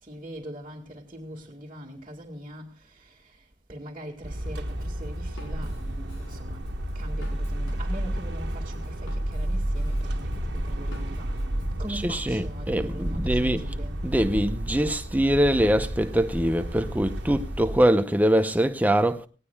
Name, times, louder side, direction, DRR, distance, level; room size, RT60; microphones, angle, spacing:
voice 1, 0.0-11.5 11.8-14.1, right 1 dB, 30° right, 2.0 m, -42 dB
sound 1, 4.2-17.8, right 1 dB, 65° right, 1.6 m, -31 dB
Drum kit, 4.5-11.7, left 1 dB, 90° left, 4.6 m, -48 dB
voice 2, 11.9-13.7 14.0-19.3, right 1 dB, 10° right, 0.8 m, -23 dB
18.5 x 18.0 x 2.4 m
head